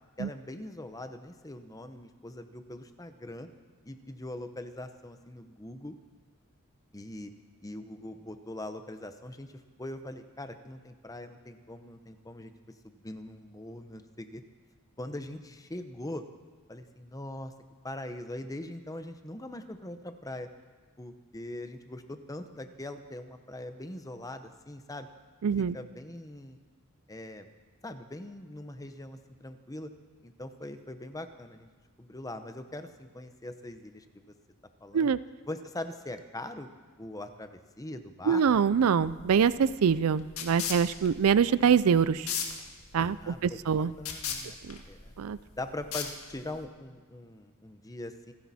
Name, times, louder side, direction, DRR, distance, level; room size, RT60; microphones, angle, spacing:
voice 1, 0.2-3.5 3.8-6.0 6.9-7.3 7.6-9.5 9.8-12.5 12.8-14.4 15.0-16.2 16.7-17.5 17.8-20.5 21.0-25.1 25.7-26.6 27.1-27.5 27.8-29.9 30.2-31.7 32.0-34.3 34.8-35.1 35.5-36.7 37.0-38.4 43.0-43.6 44.0-44.6 44.9-45.1 45.6-48.3, left 1 dB, 15° left, 8 dB, 0.8 m, -41 dB
voice 2, 25.4-25.8 34.9-35.2 38.3-42.3 42.9-43.9 44.6-44.8 45.2-45.4, right 7 dB, 70° right, 17 dB, 0.4 m, -24 dB
sound 1, 39.0-46.6, left 7 dB, 70° left, 1.9 m, -39 dB
27.5 x 10.5 x 4.2 m, 1.4 s
head